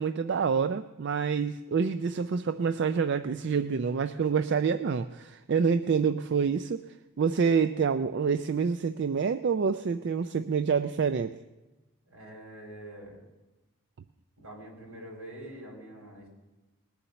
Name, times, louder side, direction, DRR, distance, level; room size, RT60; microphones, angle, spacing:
voice 1, 0.0-6.8 7.2-11.4, right 6 dB, 50° right, 10 dB, 0.4 m, -27 dB
voice 2, 12.0-13.2 14.4-16.3, right 1 dB, 75° right, -1 dB, 4.8 m, -45 dB
19.5 x 7.1 x 6.8 m, 1.1 s
head